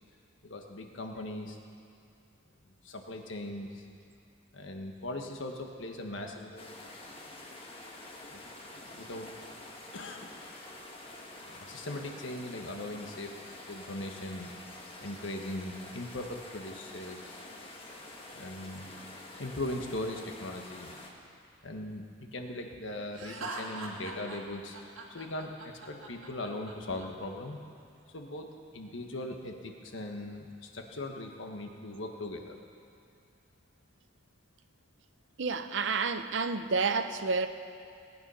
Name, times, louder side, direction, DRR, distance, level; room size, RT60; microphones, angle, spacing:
voice 1, 0.4-1.6 2.8-3.8 4.5-6.7 8.3-8.4 8.9-9.3 9.9-10.3 11.5-13.3 13.7-14.5 15.0-17.4 18.3-18.9 19.4-21.0 21.6-24.8 25.1-27.6 28.1-32.5, left 1 dB, 70° left, 3 dB, 1.4 m, -39 dB
sound 1, 6.6-21.1, left 2 dB, 25° left, 1.4 m, -47 dB
Laughter, 23.1-27.1, right 2 dB, 85° right, 1.9 m, -42 dB
voice 2, 35.4-37.5, right 4 dB, 65° right, 10 dB, 0.6 m, -29 dB
18.5 x 9.3 x 5.6 m, 2.4 s
head